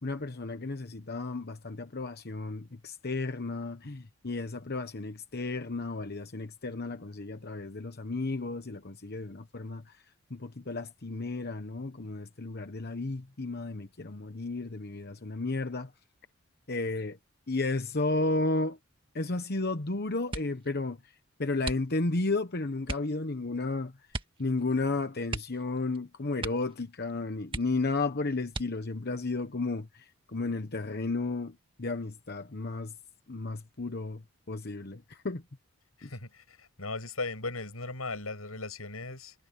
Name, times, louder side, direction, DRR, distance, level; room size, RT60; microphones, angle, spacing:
voice 1, 0.0-10.0 10.3-15.9 16.7-17.2 17.5-18.8 19.1-21.0 21.4-23.9 24.4-32.9 33.3-34.2 34.5-35.4 36.0-36.1, left 3 dB, 50° left, 1.1 m, -33 dB
sound 1, 20.3-20.7 21.6-22.2 22.8-23.2 24.1-24.5 24.7-24.8 25.3-26.0 26.4-26.8 27.1-27.2 27.5-28.0 28.5-29.0 29.7-30.4 30.7-31.1, right 2 dB, 25° right, 1.8 m, -38 dB
voice 2, 36.0-39.3, left 3 dB, 90° left, 7.6 m, -37 dB
head